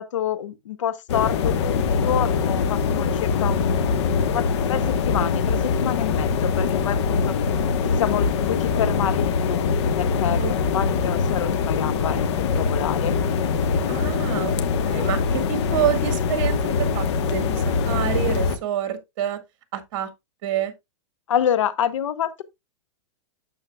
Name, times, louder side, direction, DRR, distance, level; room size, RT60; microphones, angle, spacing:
voice 1, 0.0-1.8 2.0-7.3 7.9-9.7 9.9-13.2 15.0-15.1 21.3-22.4, left 10 dB, 80° left, 0.8 m, -27 dB
sound 1, 1.1-18.6, left 5 dB, 60° left, 1.3 m, -23 dB
voice 2, 13.9-19.4 19.7-20.1 20.4-20.7, right 10 dB, 45° right, 1.9 m, -28 dB
9.1 x 7.2 x 2.3 m
hypercardioid pair, 145°, 16 cm